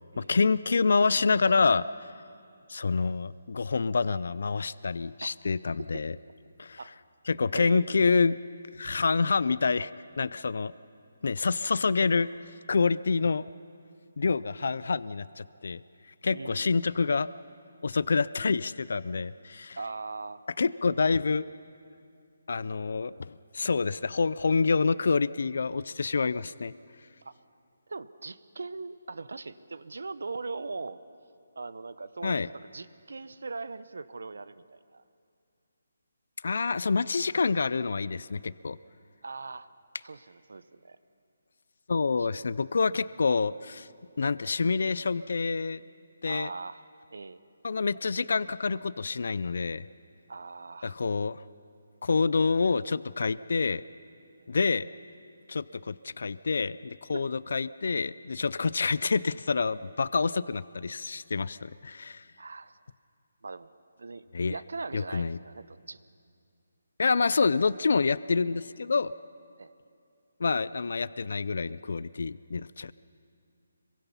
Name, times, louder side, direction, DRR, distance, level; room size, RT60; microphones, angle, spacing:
voice 1, 0.2-1.8 2.7-6.2 6.6-6.8 7.3-8.4 8.8-9.9 10.2-10.7 11.2-12.3 12.7-13.4 14.2-15.8 16.2-17.3 17.8-19.8 20.6-21.4 22.5-26.7 32.2-32.5 36.4-38.8 41.9-43.9 44.2-45.8 46.2-46.5 47.6-49.8 50.8-51.4 52.0-53.8 54.5-54.9 55.5-62.2 64.3-64.5 64.9-65.4 67.0-69.1 70.4-72.9, left 4 dB, 65° left, 18 dB, 0.4 m, -27 dB
voice 2, 7.5-7.8 14.6-14.8 16.3-16.7 19.7-20.4 27.2-27.4 27.9-31.0 31.6-35.0 39.2-39.7 40.0-41.0 42.2-42.3 46.2-46.8 47.1-47.4 50.3-51.0 57.1-57.3 62.4-62.7 63.4-63.7 64.0-66.0 69.6-69.7, right 3 dB, 80° right, 15 dB, 0.9 m, -40 dB
26.0 x 23.0 x 5.7 m, 2.4 s
hypercardioid pair, 165°, 0 cm